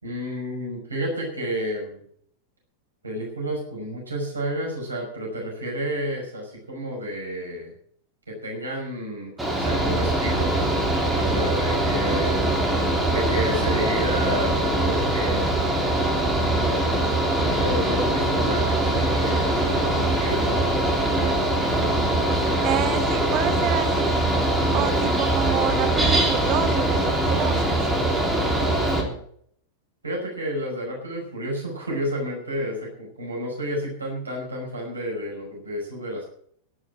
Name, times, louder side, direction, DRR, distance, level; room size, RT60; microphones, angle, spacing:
voice 1, 0.0-2.0 3.0-7.7 8.3-10.7 11.1-12.5 13.1-15.6 17.3-21.3 28.7-29.2 30.0-36.3, equal, 75° right, -1 dB, 5.7 m, -31 dB
Mechanical fan, 9.4-29.0, right 1 dB, 5° right, 3.4 m, -22 dB
voice 2, 22.6-24.2 24.7-27.8, right 11 dB, 35° right, 9 dB, 1.2 m, -29 dB
11.5 x 11.0 x 7.9 m, 0.65 s
figure-of-eight pair, 90°, 0 cm